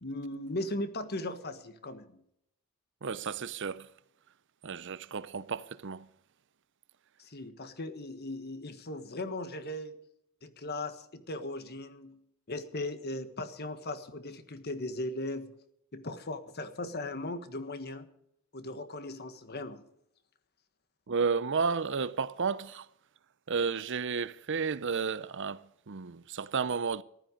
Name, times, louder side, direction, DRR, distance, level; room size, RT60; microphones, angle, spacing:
voice 1, 0.0-2.2 7.2-10.0 10.4-12.2 12.5-15.5 15.9-18.1 18.5-19.8, left 2 dB, 45° left, 1.4 m, -38 dB
voice 2, 3.0-3.9 4.6-6.1 21.1-22.9 23.5-27.0, right 5 dB, 55° right, 0.7 m, -32 dB
14.5 x 12.5 x 5.1 m
head